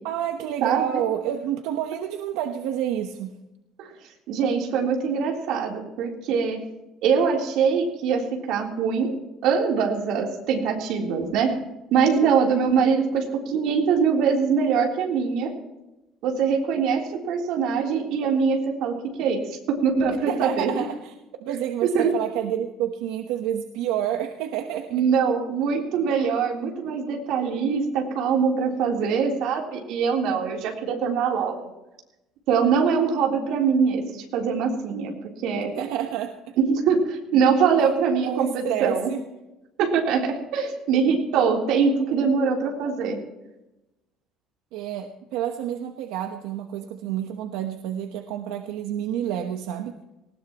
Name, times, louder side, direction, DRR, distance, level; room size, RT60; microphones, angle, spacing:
voice 1, 0.0-3.3 20.1-21.1 21.4-24.9 35.8-36.5 38.2-39.2 44.7-50.0, right 10 dB, 90° right, 5 dB, 1.1 m, -29 dB
voice 2, 0.6-1.0 3.8-3.9 4.3-6.6 7.0-9.1 9.4-11.5 11.9-15.5 16.2-20.7 21.9-22.1 24.9-31.6 32.5-35.1 35.4-35.7 36.6-39.1 39.8-43.2, right 6 dB, 65° right, 0 dB, 3.6 m, -23 dB
19.5 x 18.5 x 3.0 m, 0.96 s
cardioid pair, 170°, 0 cm